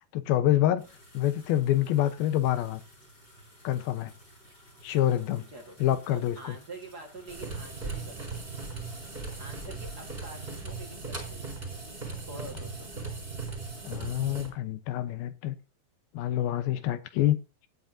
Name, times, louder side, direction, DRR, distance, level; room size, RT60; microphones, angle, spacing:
voice 1, 0.1-0.8 1.1-2.8 3.6-4.1 4.8-5.4 5.8-6.6 13.9-15.6 16.1-17.4, left 12 dB, 85° left, 2.8 m, -26 dB
sound 1, 0.8-10.6, equal, 25° left, 7.5 m, -55 dB
voice 2, 6.1-8.4 9.4-11.8 12.2-12.9, right 2 dB, 35° right, 1.8 m, -46 dB
sound 2, 7.3-14.5, right 3 dB, 15° right, 3.9 m, -38 dB
19.0 x 8.7 x 2.7 m
omnidirectional pair, 4.2 m